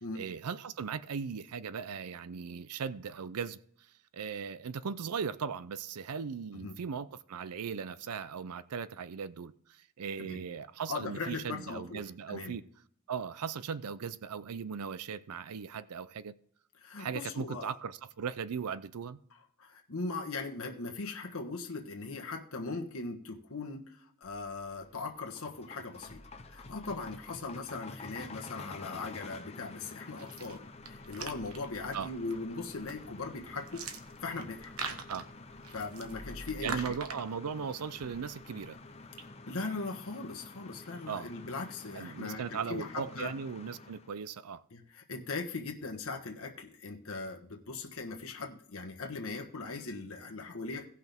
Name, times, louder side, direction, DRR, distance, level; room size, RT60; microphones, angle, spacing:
voice 1, 0.1-3.6 4.1-12.6 13.1-16.3 17.0-19.2 31.9-32.1 35.1-35.3 36.6-38.8 41.1-41.3 41.9-44.6, right 6 dB, 85° right, 0.5 m, -38 dB
voice 2, 10.9-12.0 12.3-12.6 16.8-17.7 19.6-26.2 26.5-33.9 34.2-34.7 35.7-36.9 39.5-43.3 44.7-50.9, left 3 dB, 65° left, 1.3 m, -39 dB
sound 1, 24.7-44.1, left 3 dB, 30° left, 0.7 m, -49 dB
sound 2, 24.9-25.1 26.0-29.9 30.4-30.5 30.8-37.7, left 1 dB, 35° right, 2.9 m, -55 dB
sound 3, 30.2-39.3, right 4 dB, 70° right, 1.2 m, -45 dB
17.5 x 5.9 x 3.5 m
head